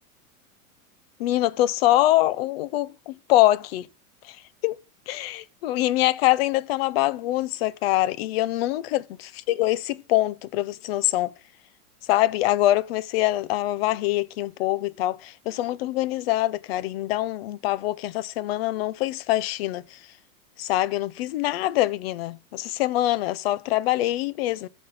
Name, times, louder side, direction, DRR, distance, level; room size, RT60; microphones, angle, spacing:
voice 1, 1.2-3.9 4.3-4.4 4.6-4.8 5.1-9.1 9.5-11.3 12.1-20.0 20.6-24.7, left 15 dB, 45° left, 0.5 m, -24 dB
13.5 x 5.1 x 4.0 m
supercardioid pair, 155°, 46 cm